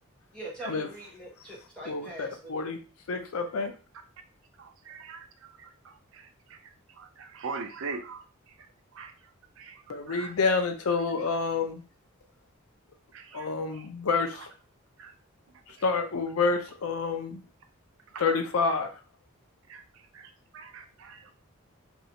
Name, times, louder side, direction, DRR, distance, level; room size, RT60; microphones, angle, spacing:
voice 1, 0.3-2.5, right 1 dB, 5° left, -6 dB, 1.2 m, -42 dB
voice 2, 1.9-2.8 3.1-3.7 9.9-11.8 13.3-14.5 15.7-17.4 18.2-18.9, left 4 dB, 80° left, 6 dB, 0.5 m, -28 dB
voice 3, 4.6-6.6 7.0-9.1 9.6-10.3 13.1-13.9 14.3-14.5 15.0-15.1 16.5-16.6 18.1-18.2 19.7-21.3, right 4 dB, 65° right, 7 dB, 0.5 m, -43 dB
3.1 x 2.7 x 2.8 m, 0.34 s
head